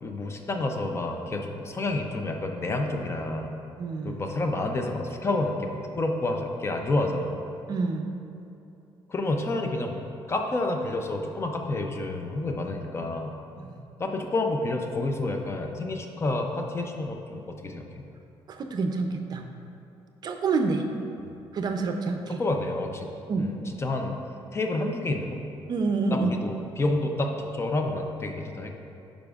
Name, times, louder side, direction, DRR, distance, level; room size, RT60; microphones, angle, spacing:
voice 1, 0.0-3.5 4.0-7.4 9.1-10.0 10.3-13.3 14.0-18.0 21.2-21.3 22.4-23.1 23.4-24.2 24.5-25.4 26.1-28.7, left 2 dB, 30° left, 4 dB, 0.5 m, -29 dB
voice 2, 3.8-4.2 7.7-8.1 13.6-13.8 18.5-19.5 20.2-20.9 21.5-22.4 23.3-23.6 25.7-26.3, right 4 dB, 45° right, 4 dB, 0.5 m, -28 dB
10.0 x 5.0 x 2.4 m, 2.8 s
cardioid pair, 120°, 10 cm